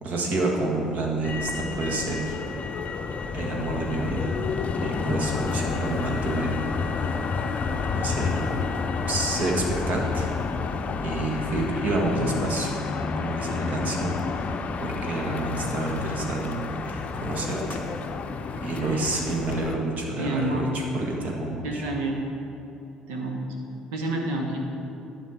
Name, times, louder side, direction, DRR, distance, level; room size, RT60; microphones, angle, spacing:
voice 1, 0.0-2.8 3.3-4.5 4.8-6.6 7.9-8.5 9.1-10.3 11.0-12.7 13.2-14.4 14.8-17.8 18.6-21.8, right 2 dB, 50° right, 0 dB, 1.6 m, -29 dB
Motor vehicle (road), 1.2-19.7, left 5 dB, 40° left, 0.6 m, -30 dB
voice 2, 18.8-19.1 20.2-20.7 21.6-22.3 23.1-23.4 23.9-24.6, right 2 dB, 70° right, 1 dB, 1.2 m, -29 dB
11.0 x 5.2 x 5.8 m, 2.8 s
figure-of-eight pair, 55°, 3 cm